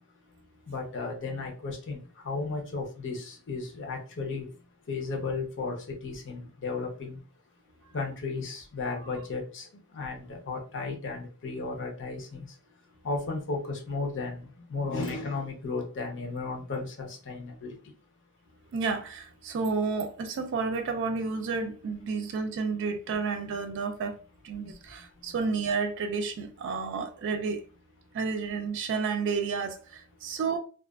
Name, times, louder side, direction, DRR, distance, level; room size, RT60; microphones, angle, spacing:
voice 1, 0.7-2.0 2.2-4.5 4.9-5.8 6.0-7.2 7.9-9.7 9.9-12.4 13.0-14.4 14.7-17.7, left 3 dB, 55° left, 0.7 m, -34 dB
voice 2, 18.7-24.2 24.4-27.6 28.1-30.6, right 4 dB, 55° right, 0.4 m, -31 dB
2.4 x 2.3 x 2.3 m
head